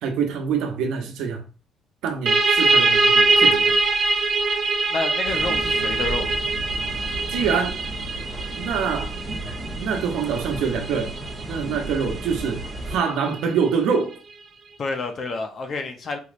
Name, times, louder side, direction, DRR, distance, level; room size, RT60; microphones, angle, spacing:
voice 1, 0.0-1.4 2.0-3.8 7.3-7.8 8.6-9.1 9.8-11.1 11.5-14.2, right 6 dB, 85° right, 4 dB, 0.9 m, -25 dB
sound 1, 2.3-13.6, right 3 dB, 35° right, 0.6 m, -23 dB
voice 2, 4.9-6.3 14.8-16.2, left 3 dB, 45° left, 6 dB, 0.7 m, -29 dB
sound 2, 5.2-13.0, right 1 dB, 5° right, 1.4 m, -34 dB
4.4 x 3.1 x 2.5 m, 0.36 s
cardioid pair, 120°, 0 cm